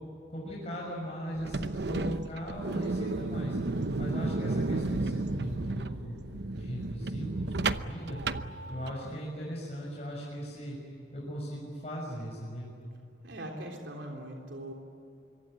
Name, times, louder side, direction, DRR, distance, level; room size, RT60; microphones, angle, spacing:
voice 1, 0.3-3.6 4.0-8.2 8.7-10.8 11.1-12.7, equal, 35° left, -5 dB, 6.4 m, -38 dB
sound 1, 1.3-9.2, right 2 dB, 65° right, 0.9 m, -33 dB
voice 2, 13.2-14.7, right 1 dB, 80° right, 1 dB, 3.6 m, -41 dB
25.5 x 24.5 x 9.2 m, 2.6 s
head